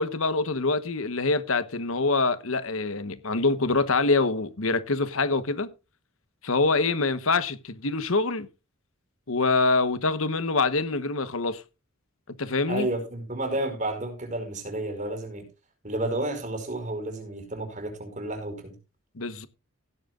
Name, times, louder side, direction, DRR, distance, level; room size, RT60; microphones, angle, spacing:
voice 1, 0.0-5.7 6.4-8.5 9.3-11.6 12.4-12.9 19.2-19.5, left 3 dB, 75° left, 1.2 m, -25 dB
voice 2, 12.7-15.4 15.8-18.7, right 1 dB, 35° right, 5.1 m, -31 dB
16.5 x 11.0 x 2.5 m
head